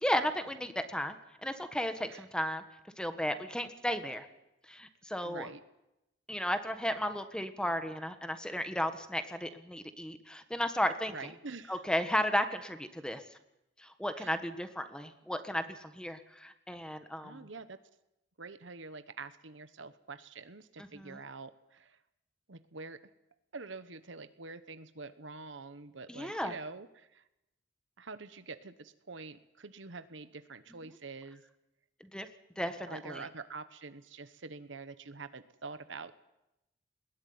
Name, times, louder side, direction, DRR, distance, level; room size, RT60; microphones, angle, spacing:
voice 1, 0.0-2.6 3.0-4.3 4.7-5.5 6.3-11.3 11.7-13.2 13.8-17.5 20.8-21.2 26.1-26.5 32.0-32.3 32.6-33.2, equal, 5° left, 9 dB, 1.4 m, -34 dB
voice 2, 5.2-5.6 11.1-11.8 14.2-14.4 17.2-17.8 18.4-22.0 22.5-23.0 23.5-27.2 28.0-31.4 32.9-36.2, right 4 dB, 70° right, 12 dB, 1.3 m, -46 dB
21.0 x 18.0 x 9.5 m, 0.89 s
head